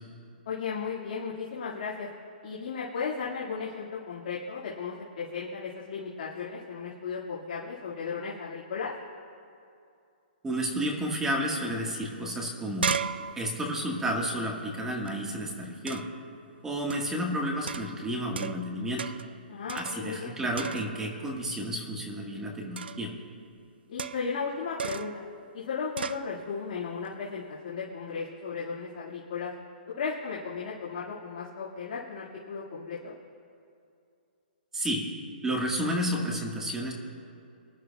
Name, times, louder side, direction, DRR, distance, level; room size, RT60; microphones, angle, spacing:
voice 1, 0.5-2.1 2.4-8.9 19.5-20.4 23.9-25.2 25.5-29.5 29.9-33.1, left 5 dB, 55° left, -6 dB, 2.1 m, -35 dB
voice 2, 10.4-12.9 13.4-16.0 16.6-19.1 19.7-23.1 34.7-35.0 35.4-36.9, equal, 10° right, 0 dB, 1.6 m, -31 dB
sound 1, 12.0-12.1 12.4-15.1 15.9-16.3 16.9-17.2 17.7-18.7 19.0-19.4 19.7-20.3 20.6-21.2 22.8-23.1 24.0-24.4 24.8-25.2 26.0-26.3, right 6 dB, 85° right, 0.4 m, -36 dB
24.0 x 11.0 x 2.4 m, 2.5 s
hypercardioid pair, 145°, 5 cm